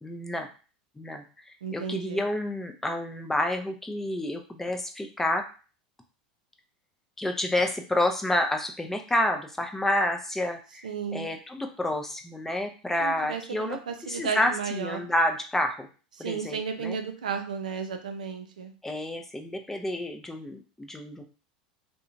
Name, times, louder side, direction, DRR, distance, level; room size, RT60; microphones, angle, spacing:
voice 1, 0.0-0.5 1.0-1.2 1.7-5.4 7.2-15.9 16.2-17.0 18.8-21.2, left 1 dB, 10° left, 4 dB, 0.5 m, -29 dB
voice 2, 1.6-2.2 10.8-11.3 13.0-15.0 16.2-18.7, right 6 dB, 90° right, 5 dB, 0.4 m, -33 dB
2.7 x 2.1 x 2.6 m, 0.36 s
hypercardioid pair, 90°, 4 cm